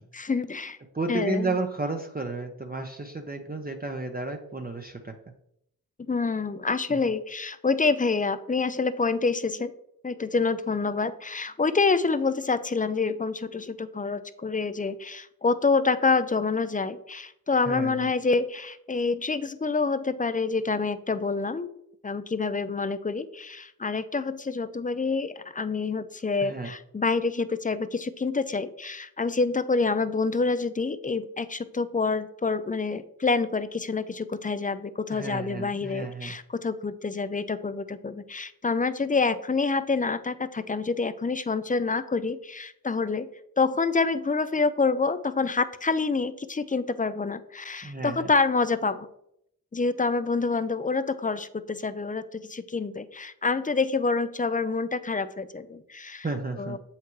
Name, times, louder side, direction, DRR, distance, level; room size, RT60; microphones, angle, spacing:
voice 1, 0.1-0.8 1.1-1.6 6.1-9.7 10.0-21.7 22.0-43.3 43.6-49.1 49.7-56.3 56.6-56.8, left 4 dB, 20° left, 13 dB, 0.4 m, -27 dB
voice 2, 0.9-5.1 6.9-7.0 17.6-18.1 26.4-26.7 35.1-36.4 47.8-48.3 56.2-56.8, right 3 dB, 25° right, 4 dB, 0.6 m, -32 dB
7.4 x 5.8 x 3.1 m, 0.76 s
wide cardioid pair, 60°, 37 cm